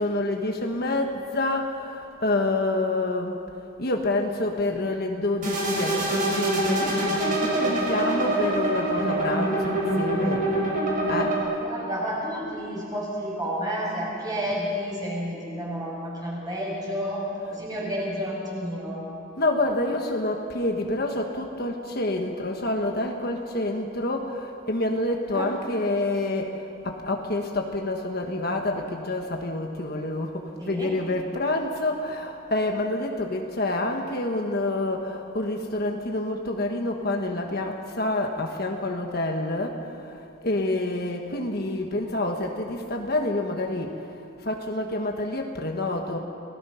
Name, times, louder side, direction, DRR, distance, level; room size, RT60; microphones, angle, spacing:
voice 1, 0.0-3.4 3.8-10.5 11.1-11.4 19.4-46.2, left 2 dB, 50° left, 3 dB, 1.4 m, -28 dB
sound 1, 5.4-11.4, right 1 dB, 40° right, 7.0 m, -25 dB
voice 2, 11.6-19.0 25.3-25.5 30.6-31.0 41.3-41.4, equal, 20° right, -4 dB, 6.9 m, -31 dB
29.5 x 19.5 x 5.8 m, 2.6 s
head